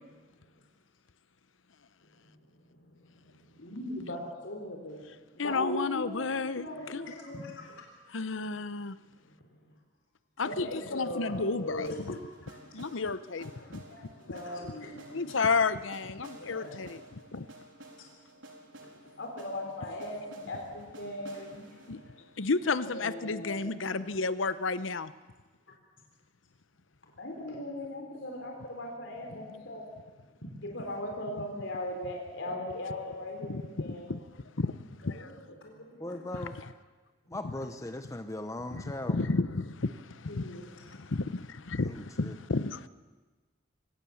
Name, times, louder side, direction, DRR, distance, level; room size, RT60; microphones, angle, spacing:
voice 1, 3.4-5.0 5.3-7.8 9.2-9.6 10.4-12.7 13.4-15.3 16.2-16.8 18.7-21.8 22.8-24.0 27.2-29.9 30.4-34.1 35.1-35.3 35.6-36.4 40.3-40.7, left 1 dB, 70° left, 1 dB, 4.0 m, -39 dB
voice 2, 5.4-7.0 8.1-9.0 10.4-12.2 12.7-14.1 15.1-17.5 21.9-22.0 22.4-25.1 33.5-34.2 34.6-34.8 35.0-35.3 38.7-38.8 39.1-42.9, left 4 dB, 85° left, 14 dB, 0.9 m, -32 dB
sound 1, 11.8-23.7, right 1 dB, 90° right, 3.9 m, -53 dB
voice 3, 36.0-36.6 37.3-39.2 41.8-42.4, left 1 dB, 15° left, 8 dB, 0.8 m, -39 dB
24.0 x 18.5 x 7.2 m, 1.3 s
head